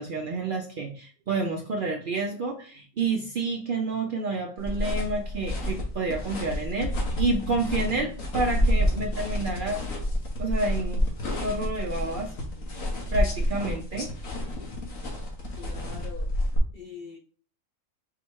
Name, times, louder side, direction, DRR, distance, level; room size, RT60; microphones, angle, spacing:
voice 1, 0.0-9.8 10.4-11.1 11.4-12.3 13.1-14.1, right 3 dB, 60° right, 3 dB, 0.5 m, -29 dB
sound 1, 4.6-16.6, left 1 dB, 90° left, 1.5 m, -29 dB
voice 2, 12.2-13.1 15.5-16.3 16.7-17.2, left 5 dB, 60° left, 2 dB, 0.5 m, -45 dB
4.8 x 2.1 x 4.5 m, 0.41 s
omnidirectional pair, 1.3 m